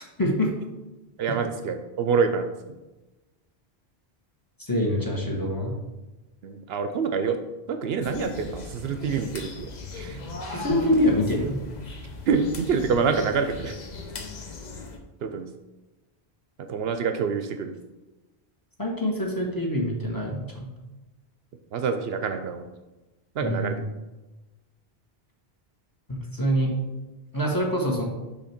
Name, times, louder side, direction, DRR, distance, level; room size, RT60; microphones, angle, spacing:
voice 1, 0.2-0.5 1.3-1.4 4.6-5.7 10.5-11.6 18.8-20.7 23.4-23.8 26.1-26.7 27.3-28.0, equal, 20° left, -1 dB, 1.2 m, -25 dB
voice 2, 1.2-2.5 6.4-7.4 7.7-10.2 10.5-10.8 12.3-13.7 15.2-15.5 16.6-17.7 21.7-22.7 23.4-23.8, right 5 dB, 70° right, 7 dB, 0.8 m, -26 dB
sound 1, 8.0-15.0, left 3 dB, 45° left, 0.8 m, -38 dB
6.3 x 3.3 x 5.8 m, 1.1 s
omnidirectional pair, 1.1 m